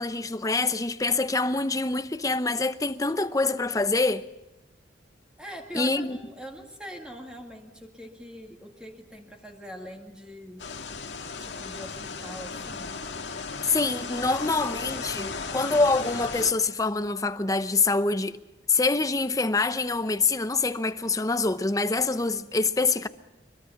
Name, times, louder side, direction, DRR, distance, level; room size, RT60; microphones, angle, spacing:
voice 1, 0.0-4.3 5.7-6.2 13.6-18.4 18.7-23.1, left 3 dB, 20° left, 0.7 m, -25 dB
voice 2, 5.4-10.7 11.4-13.0, equal, 5° right, 2.1 m, -43 dB
sound 1, 10.6-16.5, left 4 dB, 90° left, 1.9 m, -35 dB
24.0 x 22.5 x 5.9 m
head